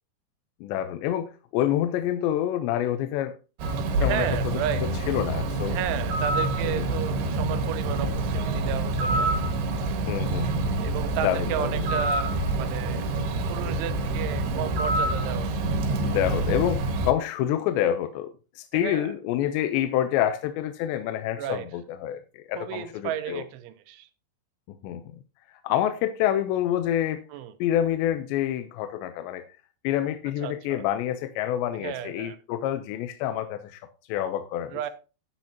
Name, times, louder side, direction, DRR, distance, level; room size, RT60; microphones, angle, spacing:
voice 1, 0.6-3.4 4.0-4.6 5.1-5.8 6.6-7.0 10.1-10.8 11.2-11.8 16.0-23.4 24.7-25.1 25.6-27.2 27.6-29.4 29.8-33.8 34.1-34.9, left 11 dB, 80° left, 9 dB, 2.7 m, -27 dB
Bird, 3.6-17.1, right 2 dB, 65° right, 3.1 m, -27 dB
voice 2, 4.0-4.8 5.7-9.3 10.8-13.1 13.5-15.5 18.7-19.1 21.4-21.7 22.6-24.1 27.3-27.5 30.4-30.8 31.8-32.4 34.7-34.9, right 11 dB, 80° right, 11 dB, 3.2 m, -33 dB
12.5 x 9.0 x 2.8 m, 0.32 s
omnidirectional pair, 5.5 m